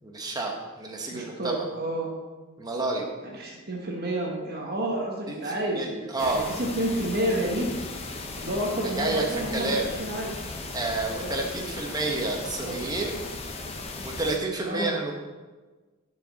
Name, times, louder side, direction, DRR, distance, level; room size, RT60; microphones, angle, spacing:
voice 1, 0.0-1.6 2.6-3.1 5.3-6.5 8.8-9.9 10.7-13.4 14.0-15.1, right 2 dB, 15° right, 0 dB, 1.0 m, -30 dB
voice 2, 1.1-2.1 3.2-5.9 6.2-7.8 8.4-10.4 11.1-11.4 12.7-12.8 14.6-14.9, right 1 dB, 45° right, -1 dB, 1.1 m, -30 dB
sound 1, 6.2-14.4, left 3 dB, 30° left, 0.7 m, -37 dB
11.0 x 5.1 x 4.0 m, 1.3 s
head